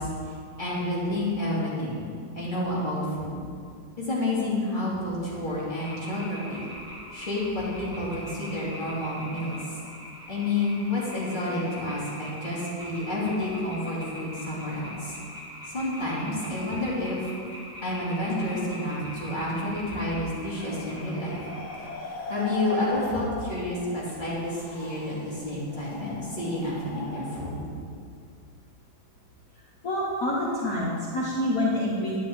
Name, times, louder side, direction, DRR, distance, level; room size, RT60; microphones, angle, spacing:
voice 1, 0.0-2.1 2.3-3.4 4.0-6.6 7.1-9.6 10.3-15.1 15.7-17.3 17.8-21.5 22.0-27.7, left 1 dB, 25° left, -8 dB, 2.9 m, -30 dB
sound 1, 5.8-21.9, equal, ahead, 1.2 m, -42 dB
sound 2, 20.5-27.6, left 1 dB, 80° left, 2.4 m, -39 dB
voice 2, 29.8-32.2, left 1 dB, 50° left, -5 dB, 1.5 m, -27 dB
11.0 x 9.9 x 3.7 m, 2.2 s
omnidirectional pair, 2.2 m